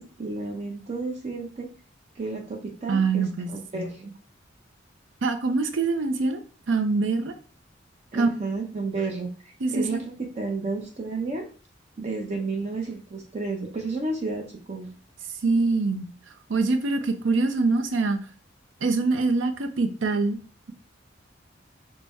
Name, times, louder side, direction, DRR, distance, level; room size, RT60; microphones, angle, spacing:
voice 1, 0.0-1.7 2.2-4.1 8.1-11.5 12.0-14.9, right 3 dB, 35° right, 2 dB, 0.5 m, -32 dB
voice 2, 2.9-3.9 5.2-7.3 8.1-8.3 9.6-10.0 15.4-16.1 16.5-18.2 18.8-20.4, right 3 dB, 90° right, 7 dB, 0.6 m, -24 dB
5.2 x 2.1 x 3.4 m, 0.39 s
head